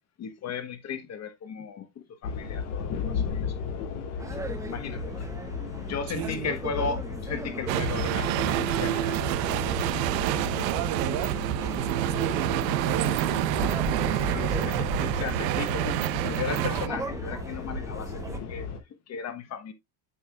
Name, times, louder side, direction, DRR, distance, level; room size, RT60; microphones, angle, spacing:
voice 1, 0.2-3.9 4.7-5.3 5.9-9.6 13.3-13.4 14.0-19.7, left 6 dB, 30° left, 1.2 m, -36 dB
sound 1, 2.2-18.8, left 5 dB, 85° left, 2.8 m, -36 dB
sound 2, 4.2-18.4, right 2 dB, 5° right, 0.8 m, -37 dB
voice 2, 6.1-6.5 10.6-11.4 11.7-13.5, right 11 dB, 45° right, 1.0 m, -35 dB
sound 3, 7.7-16.9, right 14 dB, 80° right, 0.9 m, -28 dB
8.6 x 6.4 x 2.4 m
supercardioid pair, 135°, 49 cm